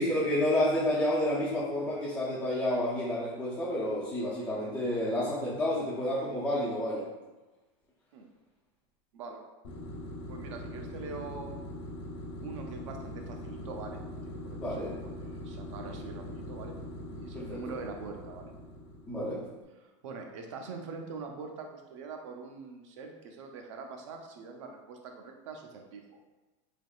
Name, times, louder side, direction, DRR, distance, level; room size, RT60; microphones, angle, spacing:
voice 1, 0.0-7.1 14.5-14.9 17.3-17.6 19.1-19.4, left 1 dB, 5° left, -10 dB, 0.3 m, -30 dB
sound 1, 9.6-19.4, left 1 dB, 85° left, 0.7 m, -42 dB
voice 2, 10.3-11.5 12.4-14.0 14.3-14.6 15.0-16.8 17.1-18.5 19.8-26.2, right 4 dB, 70° right, 3 dB, 0.6 m, -43 dB
3.4 x 3.0 x 2.3 m, 1.2 s
supercardioid pair, 175°, 16 cm